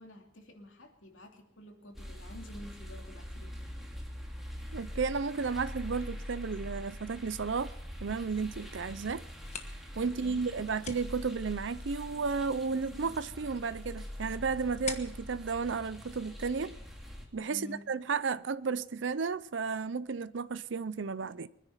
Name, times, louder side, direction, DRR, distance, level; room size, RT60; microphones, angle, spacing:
voice 1, 0.0-3.9 10.1-10.4 17.5-17.8, left 1 dB, 85° left, 2.7 m, -50 dB
sound 1, 1.9-17.2, equal, ahead, 2.8 m, -44 dB
voice 2, 4.7-7.7 8.0-9.2 9.9-16.8 17.3-21.5, right 5 dB, 70° right, 0.6 m, -33 dB
sound 2, 9.2-16.8, left 5 dB, 35° left, 1.4 m, -48 dB
24.0 x 10.0 x 5.7 m
head